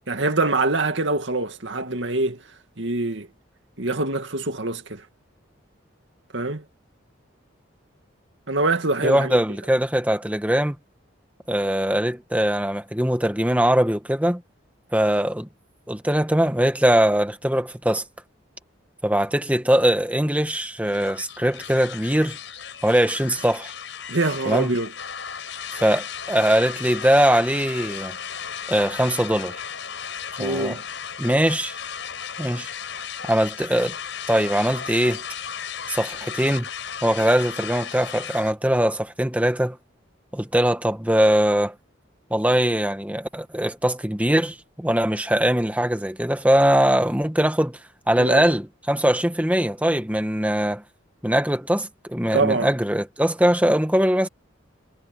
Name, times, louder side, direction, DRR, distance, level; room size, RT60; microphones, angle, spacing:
voice 1, 0.1-2.4 2.8-3.3 3.8-5.0 6.3-6.6 8.5-9.4 24.1-24.9 30.4-30.8 48.2-48.5 52.3-52.7, right 2 dB, 65° right, 2.3 m, -24 dB
voice 2, 9.0-10.7 11.5-14.4 14.9-15.5 15.9-18.0 19.0-22.4 22.8-23.7 24.4-24.7 25.7-28.2 28.7-29.6 30.4-30.8 31.2-31.8 32.4-32.7 33.2-34.0 34.3-35.2 35.9-36.7 37.0-39.8 40.3-41.7 42.3-47.8 48.1-50.8 51.2-54.3, equal, 5° right, 1.5 m, -21 dB
sound 1, 20.8-38.5, left 7 dB, 70° left, 5.2 m, -35 dB
head